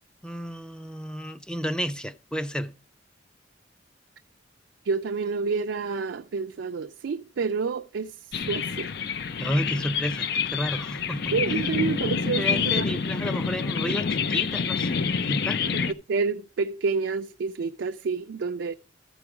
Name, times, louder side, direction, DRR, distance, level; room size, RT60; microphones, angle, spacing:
voice 1, 0.2-2.7 9.4-11.3 12.4-15.0 15.3-15.6, equal, 5° left, 0.5 m, -31 dB
voice 2, 4.8-9.0 11.3-12.9 15.7-15.8 16.1-18.7, right 4 dB, 75° right, 0.4 m, -29 dB
sound 1, 8.3-15.9, left 6 dB, 65° left, 0.6 m, -27 dB
14.0 x 4.7 x 4.9 m
head